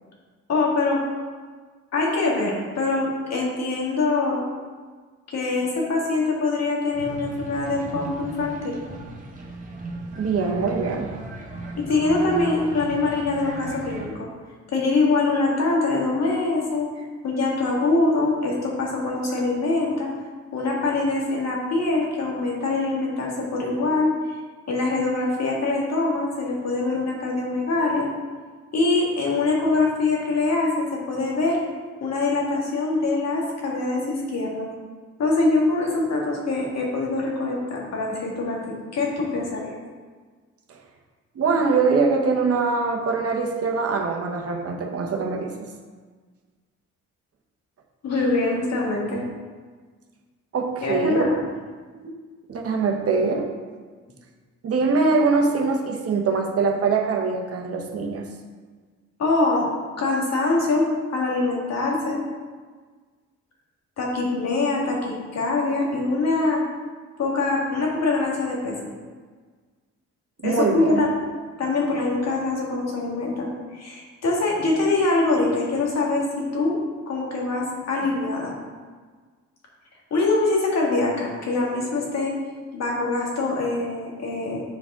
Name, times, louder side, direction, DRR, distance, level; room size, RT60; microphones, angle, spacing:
voice 1, 0.5-1.0 1.9-4.4 5.3-8.8 11.8-14.3 14.7-20.1 20.5-24.1 24.7-28.1 28.7-31.6 32.0-34.7 35.2-39.7 48.0-49.2 50.8-51.4 59.2-59.7 60.0-62.2 64.0-66.6 67.2-68.8 70.4-71.1 71.6-76.8 77.1-78.5 80.1-82.3 82.7-84.6, left 3 dB, 60° left, -2 dB, 1.9 m, -24 dB
sound 1, 6.9-14.1, right 2 dB, 25° right, 1.3 m, -36 dB
voice 2, 10.2-11.1 40.7-40.8 41.3-45.7 50.5-51.3 52.0-52.1 52.5-53.5 54.6-58.3 70.4-71.0, right 4 dB, 50° right, 2 dB, 1.0 m, -23 dB
7.5 x 4.9 x 3.7 m, 1.5 s
cardioid pair, 90°, 30 cm